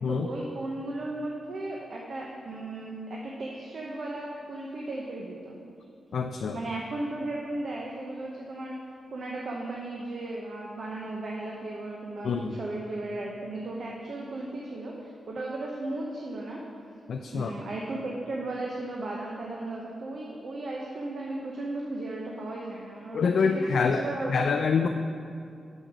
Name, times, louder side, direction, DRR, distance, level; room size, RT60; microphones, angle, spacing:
voice 1, 0.1-5.6 6.5-8.8 9.1-16.6 17.3-23.2 23.7-24.5, right 2 dB, 60° right, -2 dB, 0.8 m, -35 dB
voice 2, 6.1-6.6 12.2-12.6 17.1-17.5 23.1-24.0 24.3-24.9, left 5 dB, 70° left, 5 dB, 0.3 m, -26 dB
6.5 x 6.4 x 6.0 m, 2.4 s
cardioid pair, 100°, 0 cm